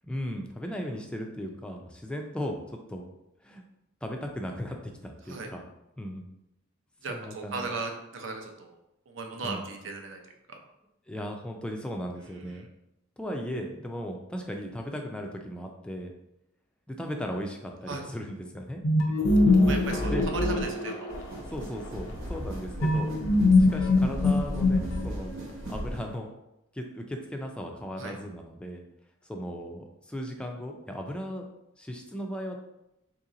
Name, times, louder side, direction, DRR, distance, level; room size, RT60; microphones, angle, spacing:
voice 1, 0.0-2.6 2.9-3.1 3.4-3.6 4.0-5.6 6.0-6.3 7.1-7.7 9.4-9.6 11.1-12.7 13.2-16.1 16.9-18.8 19.1-19.2 19.8-20.3 21.5-23.1 23.6-25.4 25.7-26.3 26.7-28.8 29.3-31.4 31.8-32.6, equal, 5° left, 2 dB, 0.4 m, -36 dB
voice 2, 7.0-8.7 9.1-10.2 12.5-12.6 17.9-18.1 19.7-21.1 28.0-28.1, right 3 dB, 65° right, 3 dB, 0.6 m, -36 dB
sound 1, 18.8-21.4 22.8-25.3, left 2 dB, 75° left, 0.5 m, -23 dB
sound 2, 21.1-26.1, right 1 dB, 90° right, 0.9 m, -36 dB
3.0 x 2.8 x 3.7 m, 0.88 s
head